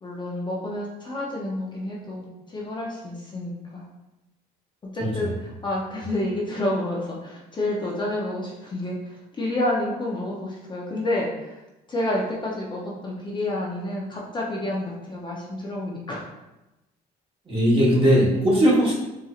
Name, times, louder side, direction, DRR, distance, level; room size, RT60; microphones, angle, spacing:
voice 1, 0.0-3.8 4.8-11.6 11.9-16.3, left 1 dB, 25° left, -4 dB, 0.6 m, -29 dB
voice 2, 17.5-18.9, equal, 30° right, -5 dB, 1.3 m, -19 dB
4.2 x 2.6 x 2.4 m, 1.0 s
cardioid pair, 110°, 17 cm